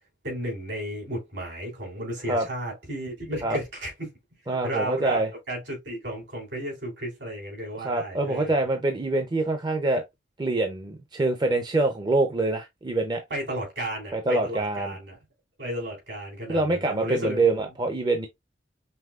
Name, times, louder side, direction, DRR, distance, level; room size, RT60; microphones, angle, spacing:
voice 1, 0.2-4.1 4.6-5.2 5.5-8.5 13.3-15.2 15.6-17.4, right 1 dB, 65° right, 3.2 m, -33 dB
voice 2, 4.5-5.3 7.8-10.0 10.4-13.2 14.1-15.0 16.5-18.3, right 2 dB, 25° right, 0.5 m, -25 dB
5.5 x 3.1 x 2.4 m
head